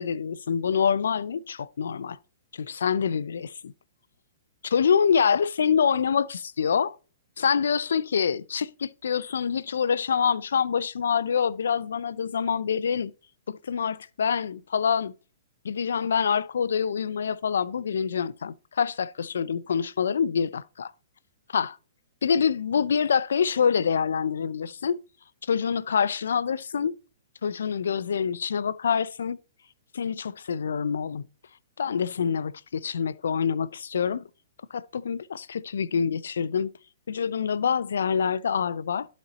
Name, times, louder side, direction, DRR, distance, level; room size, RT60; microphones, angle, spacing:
voice 1, 0.0-2.2 2.5-3.7 4.6-7.0 7.4-13.1 13.5-15.1 15.6-20.9 21.5-21.8 22.2-25.0 25.4-27.0 27.4-29.4 29.9-31.2 31.8-34.2 34.7-36.7 37.1-39.1, left 7 dB, 80° left, 0.4 m, -26 dB
11.5 x 4.2 x 4.0 m
hypercardioid pair, 145°, 0 cm